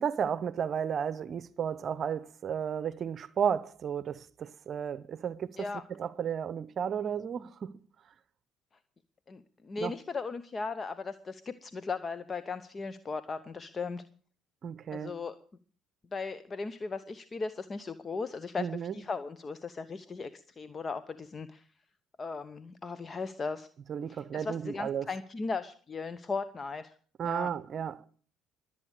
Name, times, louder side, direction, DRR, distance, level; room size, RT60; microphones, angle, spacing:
voice 1, 0.0-7.8 9.8-9.9 14.6-15.2 18.6-19.0 23.9-25.1 27.2-28.0, right 8 dB, 50° right, 0.7 m, -33 dB
voice 2, 9.3-14.0 14.9-15.4 16.1-21.6 22.2-23.7 24.1-26.9 27.2-27.5, left 4 dB, 35° left, 0.9 m, -37 dB
22.0 x 8.7 x 6.6 m
hypercardioid pair, 60°, 0 cm